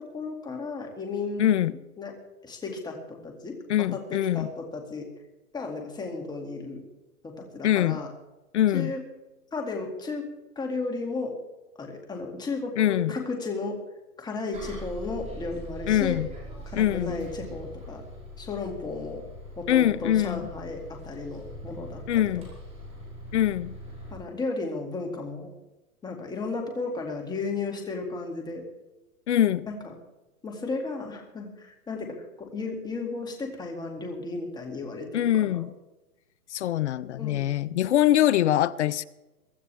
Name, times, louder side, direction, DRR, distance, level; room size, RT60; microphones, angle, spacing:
voice 1, 0.0-1.6 2.0-2.1 2.4-3.6 3.9-5.1 5.5-6.8 7.2-8.1 8.7-9.0 9.5-10.3 10.6-11.3 11.8-13.8 14.2-16.2 16.7-18.0 18.4-19.2 19.6-22.4 24.1-25.5 26.0-28.6 29.7-29.9 30.4-35.7 37.2-37.5, left 3 dB, 10° left, 2.3 m, -34 dB
voice 2, 1.4-1.7 3.7-4.5 7.6-8.0 8.5-8.9 12.8-13.1 15.9-16.3 16.7-17.3 19.7-20.4 22.1-22.5 23.3-23.8 29.3-29.7 35.1-35.7 36.5-39.0, left 12 dB, 50° left, 0.6 m, -23 dB
Bus, 14.5-24.1, equal, 15° right, 5.2 m, -42 dB
23.5 x 12.5 x 3.5 m
hypercardioid pair, 145°, 45 cm